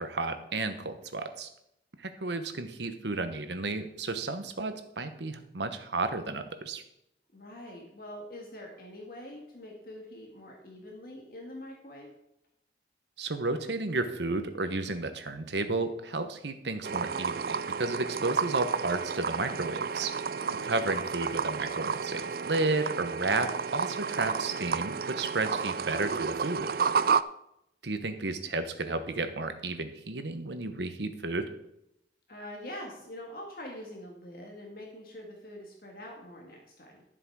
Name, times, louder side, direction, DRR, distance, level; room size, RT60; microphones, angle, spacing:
voice 1, 0.0-1.5 2.0-6.8 13.2-20.1 20.6-26.7 27.8-31.5, right 3 dB, 80° right, 9 dB, 1.1 m, -32 dB
voice 2, 7.3-12.1 20.4-20.8 32.3-37.0, left 1 dB, 55° left, 0 dB, 1.9 m, -44 dB
sound 1, 16.8-27.2, right 6 dB, 55° right, 0.4 m, -31 dB
12.5 x 7.5 x 4.8 m, 0.80 s
head